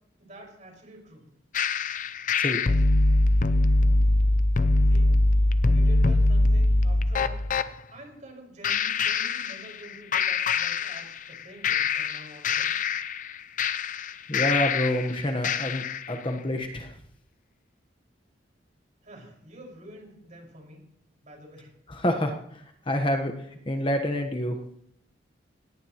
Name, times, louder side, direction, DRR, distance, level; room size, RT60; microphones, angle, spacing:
voice 1, 0.2-1.3 4.9-5.1 5.7-7.4 7.9-12.8 19.0-20.8 21.2-21.7, right 1 dB, 40° right, 1 dB, 5.3 m, -47 dB
sound 1, 1.5-7.7 8.6-9.9 10.1-11.3 11.6-15.1 15.4-16.1, left 2 dB, 40° left, 0.6 m, -23 dB
voice 2, 14.3-16.9 21.9-23.3 23.7-24.6, left 1 dB, 25° left, 5 dB, 1.1 m, -28 dB
18.0 x 18.0 x 3.0 m, 0.73 s
head